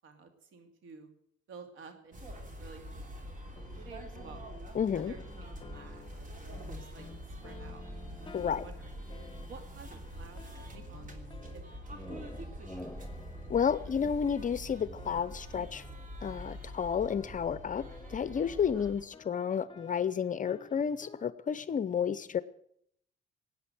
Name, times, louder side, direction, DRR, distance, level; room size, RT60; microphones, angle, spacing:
voice 1, 0.0-1.1 1.5-4.4 4.9-7.9 8.4-9.1 9.5-11.2 11.5-12.8 18.7-19.0, right 4 dB, 80° right, 7 dB, 2.7 m, -53 dB
sound 1, 2.1-19.0, equal, 40° right, 3.0 m, -45 dB
sound 2, 3.2-21.2, left 4 dB, 25° left, 1.2 m, -54 dB
voice 2, 4.7-5.1 8.3-8.6 13.5-15.8 16.2-17.8 18.1-22.4, left 7 dB, 40° left, 16 dB, 0.7 m, -31 dB
sound 3, 11.4-16.1, left 1 dB, 5° left, 0.8 m, -50 dB
17.5 x 9.2 x 7.9 m, 0.70 s
cardioid pair, 90°, 20 cm